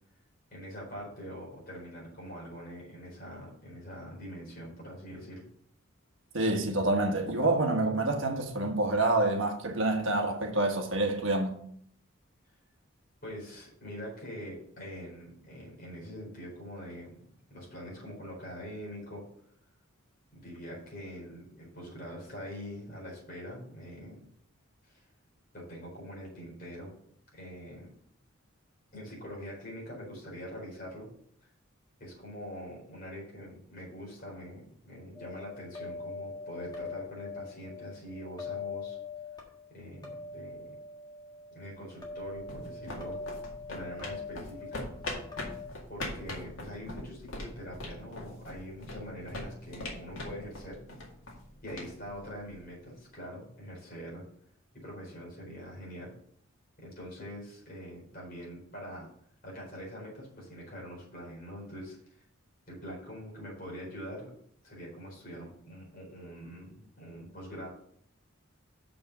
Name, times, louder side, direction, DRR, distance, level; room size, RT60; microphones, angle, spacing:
voice 1, 0.5-5.4 13.2-19.3 20.3-24.3 24.8-25.1 25.5-26.9 27.3-27.9 28.9-31.1 32.0-39.0 39.7-40.7 41.5-43.2 43.7-45.2 45.9-50.8 51.6-54.2 54.7-56.1 56.8-59.1 59.4-62.2 62.7-64.3 64.6-67.7, equal, 45° left, 4.3 m, -44 dB
voice 2, 6.3-11.6, right 2 dB, 65° right, 1.4 m, -27 dB
sound 1, 35.1-45.7, left 4 dB, 20° left, 1.6 m, -42 dB
sound 2, 42.0-52.8, left 1 dB, 80° left, 2.1 m, -42 dB
6.6 x 5.4 x 6.6 m
head